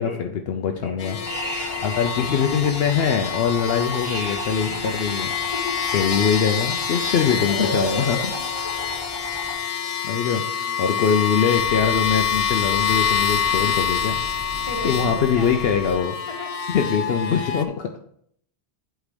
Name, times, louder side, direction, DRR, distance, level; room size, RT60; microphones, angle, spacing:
voice 1, 0.0-1.2 1.8-5.3 5.9-8.3 10.0-14.2 14.8-16.2 16.7-17.9, left 7 dB, 70° left, 5 dB, 0.8 m, -23 dB
voice 2, 0.8-2.0 5.5-5.8 7.2-9.0 9.8-10.0 10.6-10.9 14.7-15.7 16.3-16.6, left 2 dB, 30° left, 2 dB, 1.3 m, -37 dB
sound 1, 1.0-17.6, left 7 dB, 45° left, 0.5 m, -27 dB
sound 2, 1.2-9.6, right 1 dB, 15° right, 2.5 m, -33 dB
sound 3, 11.5-15.9, equal, 80° right, 2.4 m, -38 dB
8.2 x 3.8 x 5.0 m, 0.67 s
omnidirectional pair, 1.1 m